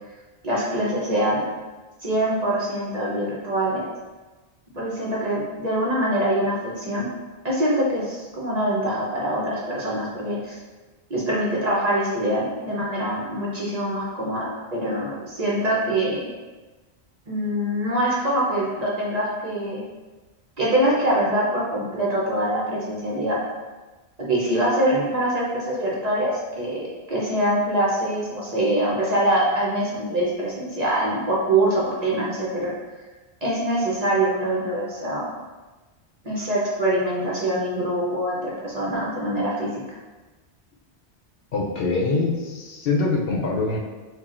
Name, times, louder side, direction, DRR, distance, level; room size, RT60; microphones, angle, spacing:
voice 1, 0.4-1.5 2.0-3.9 4.7-7.1 7.4-10.6 11.1-16.3 17.3-19.8 20.6-23.4 24.2-32.7 33.4-35.3 36.2-40.0, right 1 dB, 45° right, -5 dB, 0.7 m, -24 dB
voice 2, 41.5-43.8, left 3 dB, 65° left, -2 dB, 0.7 m, -24 dB
5.8 x 2.2 x 2.5 m, 1.2 s
omnidirectional pair, 1.1 m